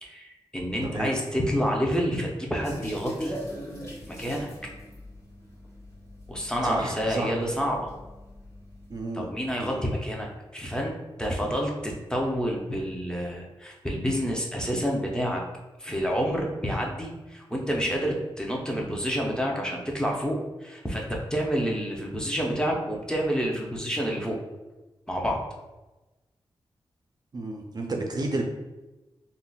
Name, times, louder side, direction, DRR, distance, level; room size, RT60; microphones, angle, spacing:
voice 1, 0.0-3.4 4.1-4.5 6.3-7.9 9.1-10.9 11.2-15.4 15.8-24.4 25.1-25.4, equal, 10° left, -1 dB, 0.6 m, -28 dB
voice 2, 0.8-1.1 6.6-7.3 8.9-9.3 9.6-9.8 27.3-28.5, right 2 dB, 45° right, 1 dB, 0.4 m, -31 dB
sound 1, 2.6-9.0, equal, 35° left, 1.2 m, -40 dB
3.7 x 2.0 x 2.3 m, 1.1 s
cardioid pair, 70°, 9 cm